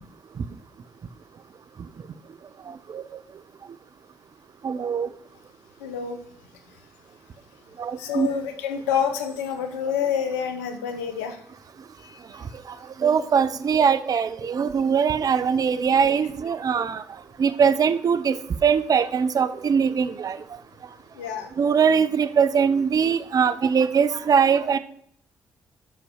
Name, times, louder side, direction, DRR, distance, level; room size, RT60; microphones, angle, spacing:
voice 1, 4.6-5.1 8.1-8.3 13.0-16.9 17.4-18.3 18.6-20.4 21.6-24.8, right 6 dB, 50° right, 13 dB, 0.7 m, -21 dB
voice 2, 5.8-6.2 8.0-11.4 12.0-12.2 15.9-16.0 21.1-21.5, left 7 dB, 90° left, 8 dB, 0.9 m, -28 dB
6.1 x 5.6 x 6.3 m, 0.64 s
hypercardioid pair, 45°, 8 cm